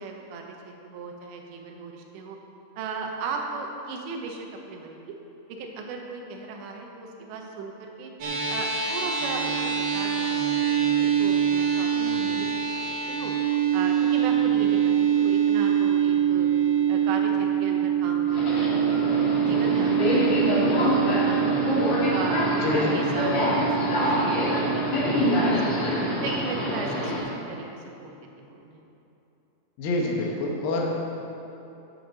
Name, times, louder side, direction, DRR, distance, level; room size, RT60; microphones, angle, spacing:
voice 1, 0.0-2.4 2.8-5.1 5.5-8.1 8.5-11.9 12.3-13.3 13.7-16.5 16.9-21.6 22.1-23.5 23.8-24.1 24.4-25.8 26.1-28.2 28.5-28.8, right 3 dB, 75° right, 2 dB, 3.0 m, -36 dB
sound 1, 8.2-26.8, right 8 dB, 60° right, 3.0 m, -25 dB
voice 2, 11.9-12.4 22.6-23.1 29.8-30.9, left 2 dB, 75° left, -1 dB, 2.1 m, -28 dB
Subway metro underground, 18.3-27.2, left 1 dB, 45° left, 3.3 m, -25 dB
14.0 x 9.3 x 4.1 m, 2.9 s
omnidirectional pair, 5.8 m